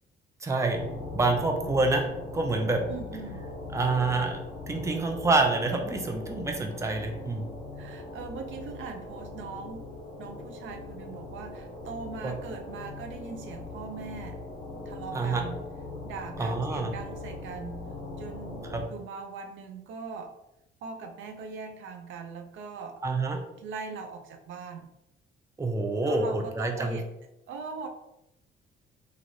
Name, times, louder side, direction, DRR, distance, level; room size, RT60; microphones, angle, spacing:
voice 1, 0.4-0.8 1.1-2.1 2.3-2.8 3.7-4.4 4.7-7.5 12.2-12.3 15.1-15.4 16.4-16.9 18.7-18.8 23.0-23.4 25.6-27.0, right 3 dB, 15° right, 3 dB, 0.5 m, -27 dB
sound 1, 0.7-18.9, left 2 dB, 50° left, 1.0 m, -40 dB
voice 2, 2.9-3.5 7.8-9.9 10.2-14.4 14.9-15.6 16.0-17.8 18.2-20.4 20.8-23.0 23.5-24.9 26.0-27.1 27.5-27.9, right 5 dB, 75° right, 5 dB, 0.5 m, -40 dB
3.0 x 2.5 x 2.6 m, 0.85 s
cardioid pair, 90°, 20 cm